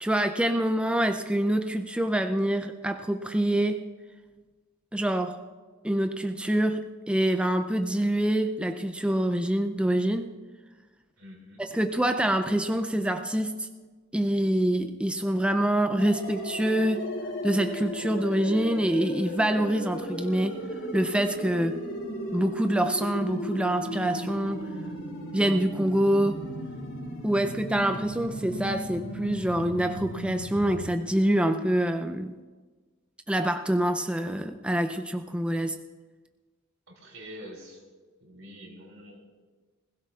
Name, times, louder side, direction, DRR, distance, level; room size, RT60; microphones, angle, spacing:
voice 1, 0.0-3.8 4.9-5.4 5.8-10.3 11.6-13.7 14.1-17.1 17.4-20.6 20.9-21.8 22.3-24.7 25.3-26.4 27.2-32.3 33.3-35.8, right 1 dB, 5° right, 7 dB, 0.4 m, -26 dB
voice 2, 11.2-11.6 36.9-37.8 38.2-39.2, equal, 80° right, -1 dB, 3.6 m, -46 dB
sound 1, 16.0-30.9, equal, 75° left, 3.8 m, -36 dB
20.5 x 16.0 x 2.4 m, 1.4 s
head